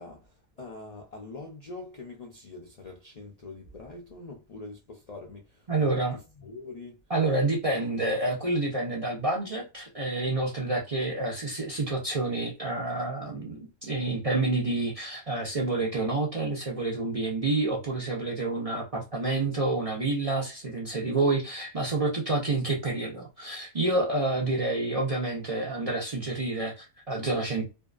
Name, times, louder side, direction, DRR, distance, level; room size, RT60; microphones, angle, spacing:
voice 1, 0.0-7.0, left 3 dB, 85° left, 0.3 m, -44 dB
voice 2, 5.7-6.2 7.1-27.6, right 2 dB, 45° right, 0.4 m, -28 dB
2.6 x 2.3 x 2.4 m
omnidirectional pair, 1.5 m